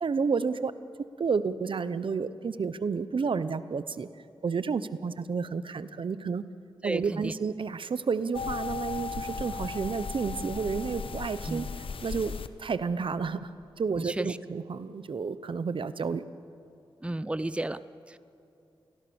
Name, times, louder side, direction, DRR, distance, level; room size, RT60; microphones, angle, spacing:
voice 1, 0.0-0.7 1.2-4.1 4.4-6.5 6.8-11.7 12.0-13.5 13.8-16.3, right 5 dB, 65° right, 14 dB, 0.8 m, -31 dB
voice 2, 6.8-7.3 11.5-11.7 13.9-14.4 17.0-17.8 18.1-18.2, right 1 dB, 10° right, 15 dB, 0.6 m, -33 dB
sound 1, 8.3-12.5, left 5 dB, 70° left, 0.9 m, -36 dB
27.5 x 21.0 x 7.0 m, 2.6 s
cardioid pair, 65°, 9 cm